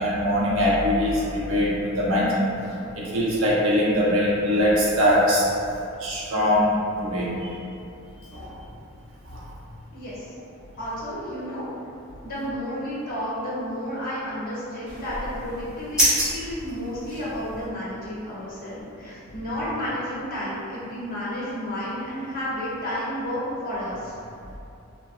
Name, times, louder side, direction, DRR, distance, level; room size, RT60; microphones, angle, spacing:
voice 1, 0.0-5.5 6.0-7.3 8.3-8.6 9.3-9.5, equal, 70° right, -6 dB, 0.7 m, -22 dB
voice 2, 9.9-10.3 10.8-11.6 12.2-24.1, equal, 45° left, -9 dB, 0.9 m, -31 dB
sound 1, 14.9-17.7, equal, 5° right, 1.0 m, -27 dB
3.0 x 2.4 x 2.5 m, 2.6 s
head